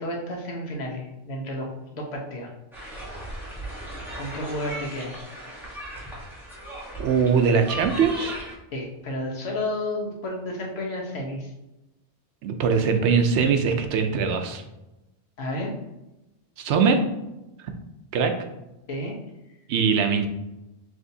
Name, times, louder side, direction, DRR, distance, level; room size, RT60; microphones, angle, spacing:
voice 1, 0.0-2.5 4.2-5.2 8.7-11.5 15.4-15.7 18.9-19.2, left 1 dB, 70° left, -1 dB, 1.2 m, -31 dB
sound 1, 2.7-8.5, right 1 dB, ahead, 1.0 m, -37 dB
voice 2, 7.0-8.3 12.4-14.6 16.6-17.0 17.6-17.7 18.1-18.3 19.7-20.3, right 6 dB, 90° right, 6 dB, 0.9 m, -21 dB
6.1 x 2.7 x 2.7 m, 0.96 s
omnidirectional pair, 1.1 m